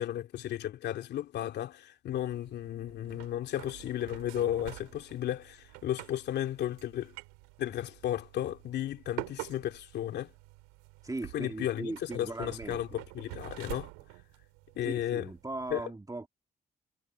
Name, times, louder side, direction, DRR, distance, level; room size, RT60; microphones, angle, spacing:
voice 1, 0.0-7.1 7.6-10.3 11.3-13.9 14.7-15.3 15.7-15.8, left 12 dB, 70° left, 2.9 m, -34 dB
sound 1, 2.1-15.7, right 28 dB, 85° right, 3.3 m, -47 dB
voice 2, 11.0-13.0 14.8-16.3, right 2 dB, 20° right, 2.4 m, -39 dB
hypercardioid pair, 45°, 18 cm